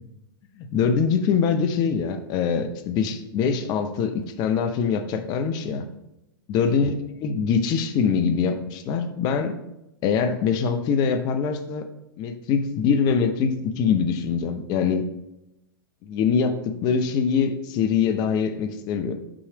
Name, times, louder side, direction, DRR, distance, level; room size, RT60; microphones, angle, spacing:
voice 1, 0.6-5.8 6.5-9.5 10.0-11.8 12.2-15.0 16.0-19.2, left 6 dB, 35° left, 8 dB, 0.6 m, -23 dB
6.2 x 3.2 x 5.7 m, 0.89 s
figure-of-eight pair, 105°, 12 cm